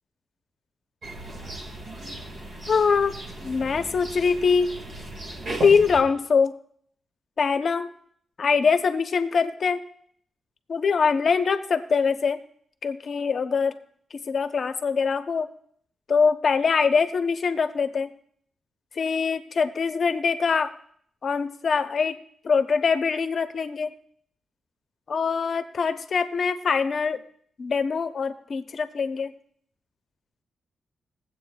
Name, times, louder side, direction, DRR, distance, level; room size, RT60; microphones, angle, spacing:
sound 1, 1.0-6.0, right 2 dB, 55° right, 1.8 m, -36 dB
voice 1, 2.7-3.1 3.4-4.7 5.6-6.5 7.4-7.9 8.4-9.8 10.7-12.4 12.8-13.7 14.1-15.5 16.1-18.1 18.9-20.7 21.2-22.1 22.4-23.9 25.1-27.2 27.6-29.3, left 5 dB, 50° left, 9 dB, 0.7 m, -23 dB
21.0 x 7.9 x 2.3 m, 0.63 s
wide cardioid pair, 125°, 0 cm